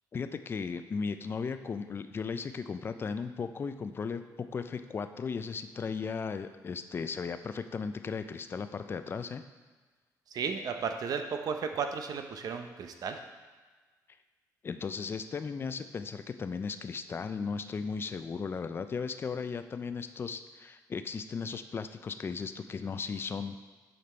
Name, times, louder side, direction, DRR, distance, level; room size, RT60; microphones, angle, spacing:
voice 1, 0.1-9.4 14.6-23.6, left 5 dB, 30° left, 10 dB, 0.4 m, -36 dB
voice 2, 10.3-13.2, right 6 dB, 60° right, 6 dB, 0.6 m, -34 dB
6.7 x 5.1 x 4.4 m, 1.4 s
cardioid pair, 115°, 7 cm